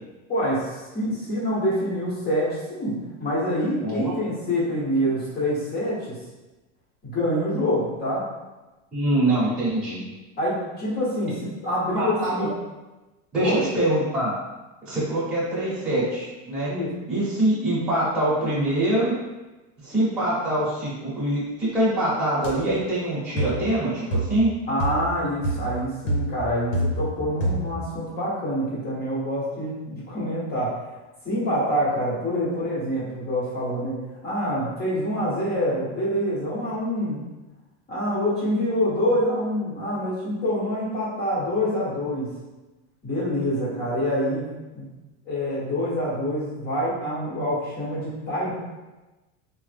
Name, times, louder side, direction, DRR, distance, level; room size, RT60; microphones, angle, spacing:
voice 1, 0.3-6.1 7.0-8.2 10.4-12.5 13.4-13.6 16.7-16.9 24.7-30.7 31.2-34.0 34.2-37.2 37.9-42.3 43.0-44.5 44.7-44.9 45.3-48.5, equal, 25° left, -7 dB, 1.1 m, -26 dB
voice 2, 3.8-4.1 8.9-10.0 12.0-12.5 13.3-14.3 14.8-16.7 17.1-19.1 19.8-24.5, right 1 dB, ahead, -11 dB, 1.0 m, -24 dB
sound 1, 22.4-22.6 23.4-23.6 24.1-24.5 24.8-25.1 25.4-25.7 26.1-27.2 27.4-27.8, right 1 dB, 80° left, 1.0 m, -26 dB
3.2 x 2.1 x 3.3 m, 1.1 s
supercardioid pair, 150°, 38 cm